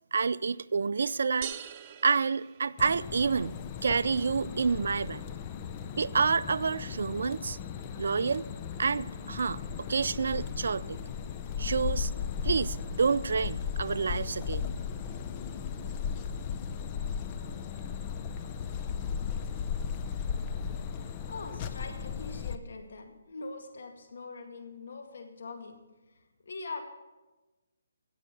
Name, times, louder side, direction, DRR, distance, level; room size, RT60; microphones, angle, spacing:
voice 1, 0.1-1.5 2.0-3.6 3.8-5.2 6.0-7.6 8.0-8.5 8.8-11.0 11.6-12.1 12.4-14.7, right 5 dB, 70° right, 18 dB, 0.4 m, -28 dB
sound 1, 1.4-3.3, right 10 dB, 30° right, 0.6 m, -43 dB
sound 2, 2.8-22.6, left 7 dB, 25° left, 0.7 m, -36 dB
voice 2, 21.0-25.8 26.1-26.8, left 3 dB, 65° left, 5 dB, 2.1 m, -43 dB
16.5 x 8.1 x 6.0 m, 1.1 s
hypercardioid pair, 160°, 0 cm